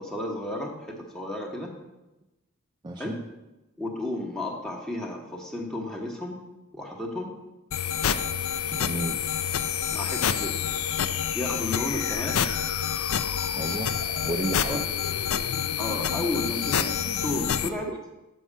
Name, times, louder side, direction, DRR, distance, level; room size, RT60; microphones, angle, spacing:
voice 1, 0.0-1.7 3.0-3.2 3.8-6.4 6.7-7.3 9.9-10.6 11.3-12.4 14.7-14.8 15.8-17.9, left 1 dB, ahead, -1 dB, 1.0 m, -33 dB
voice 2, 2.8-3.2 8.7-9.3 13.5-14.0 14.2-14.9 17.9-18.0, right 2 dB, 20° right, 2 dB, 0.3 m, -32 dB
sound 1, 7.7-17.7, left 8 dB, 75° left, 0.4 m, -28 dB
7.0 x 5.4 x 6.1 m, 1.0 s
head